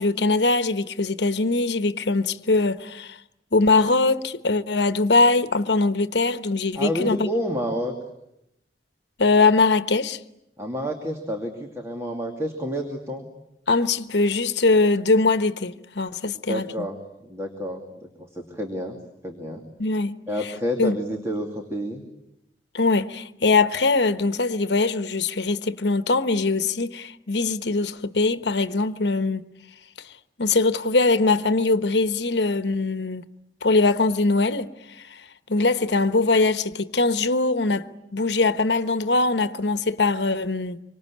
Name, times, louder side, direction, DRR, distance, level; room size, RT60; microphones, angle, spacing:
voice 1, 0.0-3.2 3.5-7.3 9.2-10.2 13.7-16.6 19.8-20.2 20.8-21.0 22.7-29.4 30.4-33.3 33.6-34.7 35.5-37.9 38.1-40.8, left 3 dB, 80° left, 1.1 m, -22 dB
voice 2, 6.7-7.9 10.6-13.3 16.5-17.0 17.2-19.0 19.2-19.6 20.3-22.0, equal, 15° right, 2.6 m, -29 dB
27.0 x 25.0 x 8.5 m
head